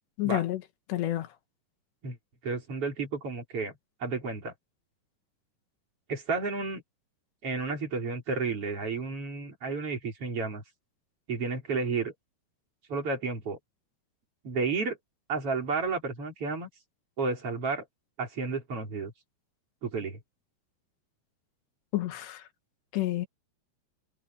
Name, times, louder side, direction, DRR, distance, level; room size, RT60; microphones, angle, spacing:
voice 1, 0.2-0.6 0.9-1.3 21.9-22.5 22.9-23.3, left 15 dB, 85° left, 3.8 m, -29 dB
voice 2, 2.4-4.5 6.1-6.8 7.4-10.6 11.3-12.1 12.9-13.6 14.4-15.0 15.3-16.7 17.2-17.8 18.2-19.1 19.8-20.2, right 4 dB, 35° right, 4.7 m, -32 dB
omnidirectional pair, 4.8 m